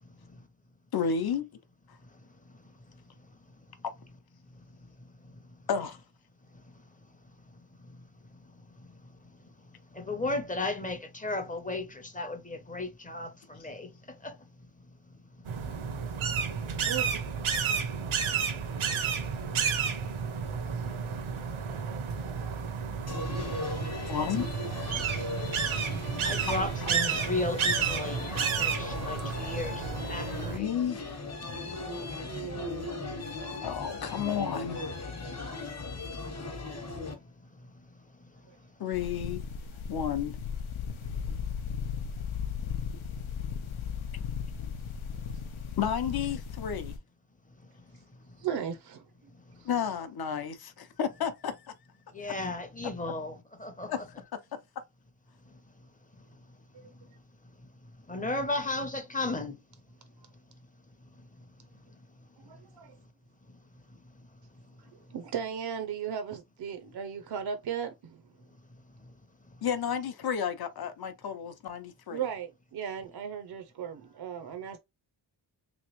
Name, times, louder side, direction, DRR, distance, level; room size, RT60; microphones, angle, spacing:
voice 1, 0.9-1.4 5.7-6.0 24.0-24.5 26.5-26.9 30.3-31.2 33.6-34.8 38.8-39.4 39.9-40.4 45.8-47.0 49.6-51.5 52.3-52.4 53.9-54.0 69.6-72.2, left 7 dB, 50° left, 0.7 m, -32 dB
voice 2, 9.9-13.9 14.2-14.4 26.2-30.7 52.1-54.1 58.1-59.6, left 2 dB, 15° left, 0.7 m, -34 dB
sound 1, 15.5-30.6, right 6 dB, 85° right, 0.9 m, -31 dB
voice 3, 16.9-17.2 32.2-32.9 48.4-49.0 49.6-49.7 56.7-56.8 62.5-62.9 65.1-68.2 72.1-74.8, right 8 dB, 55° right, 0.5 m, -36 dB
sound 2, 23.1-37.1, left 3 dB, 35° left, 1.0 m, -38 dB
sound 3, 38.9-47.0, left 7 dB, 85° left, 0.8 m, -36 dB
3.4 x 3.1 x 3.0 m
wide cardioid pair, 145°, 47 cm